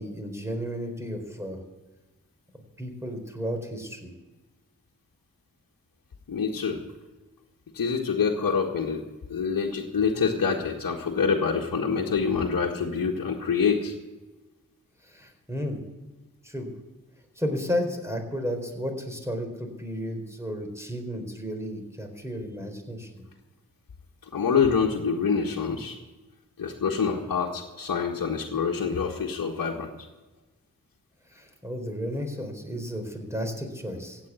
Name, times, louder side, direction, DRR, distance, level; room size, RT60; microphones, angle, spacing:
voice 1, 0.0-1.6 2.8-4.1 15.0-15.8 16.4-16.7 17.4-23.2 31.3-34.2, equal, 10° right, 4 dB, 4.0 m, -33 dB
voice 2, 6.3-6.8 7.7-13.9 24.2-26.0 26.6-29.9, left 6 dB, 70° left, -3 dB, 1.7 m, -26 dB
15.5 x 8.8 x 8.2 m, 1.2 s
cardioid pair, 45°, 34 cm